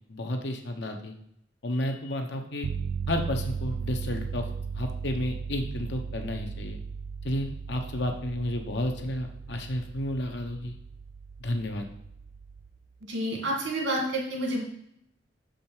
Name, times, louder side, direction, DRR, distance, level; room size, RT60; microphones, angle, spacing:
voice 1, 0.1-1.1 1.6-2.7 3.1-4.5 4.7-6.8 7.2-10.8 11.4-11.9, left 1 dB, 65° left, 4 dB, 1.0 m, -31 dB
sound 1, 2.6-12.8, right 5 dB, 60° right, 0.4 m, -37 dB
voice 2, 13.1-14.6, right 1 dB, 80° right, -1 dB, 2.1 m, -29 dB
6.6 x 5.2 x 4.4 m, 0.75 s
head